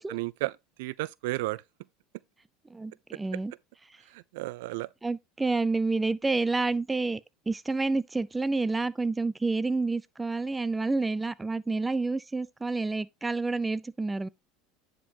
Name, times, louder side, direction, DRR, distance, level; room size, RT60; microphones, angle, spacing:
voice 1, 0.0-1.6 4.1-4.9, right 19 dB, 75° right, 0.4 m, -33 dB
voice 2, 2.7-3.5 5.0-7.2 7.5-14.3, right 3 dB, 15° right, 0.5 m, -29 dB
9.7 x 5.3 x 2.8 m
supercardioid pair, 105°, 0 cm